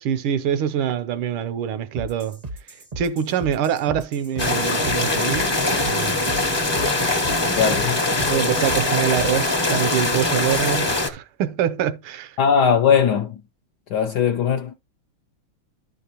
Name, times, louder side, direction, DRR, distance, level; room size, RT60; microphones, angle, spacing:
voice 1, 0.0-2.4 3.0-5.5 5.8-6.3 8.3-12.4, right 9 dB, 80° right, 1.5 m, -25 dB
sound 1, 1.9-9.6, right 1 dB, 45° right, 0.5 m, -36 dB
sound 2, 4.4-11.1, left 2 dB, 25° left, 0.5 m, -22 dB
voice 2, 7.4-8.0 12.4-13.4 13.9-14.7, left 7 dB, 75° left, 1.0 m, -19 dB
12.0 x 5.6 x 2.9 m
omnidirectional pair, 2.3 m